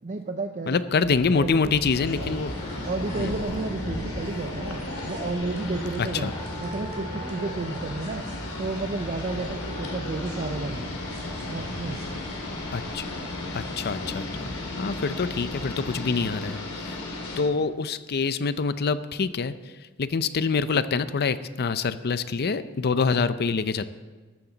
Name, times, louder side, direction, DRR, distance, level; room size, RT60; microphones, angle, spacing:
voice 1, 0.0-0.8 1.0-1.7 2.8-6.3 6.6-8.2 8.6-11.0 11.5-12.0, right 3 dB, 35° right, 6 dB, 0.5 m, -32 dB
voice 2, 0.7-2.6 3.2-3.3 6.0-6.3 12.7-13.0 13.5-14.2 14.8-17.0 17.4-19.5 20.0-23.8, left 4 dB, 45° left, 14 dB, 0.5 m, -25 dB
sound 1, 1.0-16.0, equal, 30° left, 3.2 m, -40 dB
sound 2, 1.7-14.1, right 1 dB, 65° right, 3.0 m, -43 dB
sound 3, 1.9-17.4, left 2 dB, 80° left, 2.8 m, -35 dB
13.0 x 13.0 x 4.0 m, 1.4 s
head